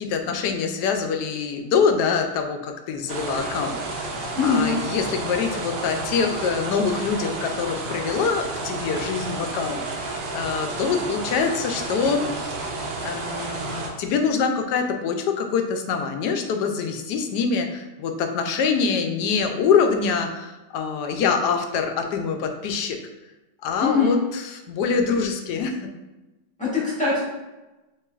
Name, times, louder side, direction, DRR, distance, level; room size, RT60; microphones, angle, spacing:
voice 1, 0.0-12.5 13.0-23.0 23.6-25.9, left 5 dB, 80° left, 5 dB, 1.1 m, -25 dB
sound 1, 3.1-13.9, right 2 dB, 85° right, 1.4 m, -31 dB
voice 2, 4.3-4.7 23.8-24.2 26.6-27.2, left 4 dB, 5° left, -8 dB, 1.2 m, -22 dB
6.1 x 3.0 x 2.4 m, 1.1 s
omnidirectional pair, 1.8 m